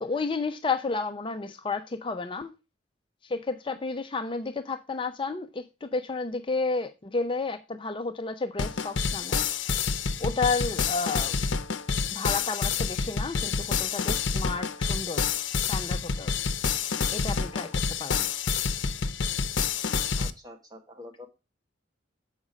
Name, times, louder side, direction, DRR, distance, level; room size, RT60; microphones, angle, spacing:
voice 1, 0.0-2.5 3.2-9.4 10.2-11.3 12.1-15.2 15.6-16.3 17.1-17.7 18.0-18.3, left 4 dB, 25° left, 0.5 m, -31 dB
sound 1, 8.6-20.3, left 5 dB, 80° left, 0.7 m, -28 dB
voice 2, 20.2-21.3, left 1 dB, 20° right, 1.6 m, -46 dB
7.2 x 5.4 x 4.8 m
head